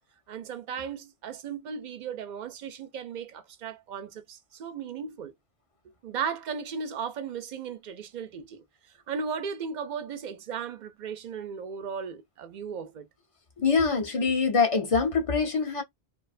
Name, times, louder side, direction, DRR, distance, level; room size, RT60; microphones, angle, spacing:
voice 1, 0.3-5.3 6.0-8.6 9.1-13.1, right 6 dB, 55° right, 0.5 m, -36 dB
voice 2, 13.6-15.8, left 5 dB, 40° left, 0.5 m, -24 dB
2.5 x 2.3 x 2.4 m
omnidirectional pair, 1.1 m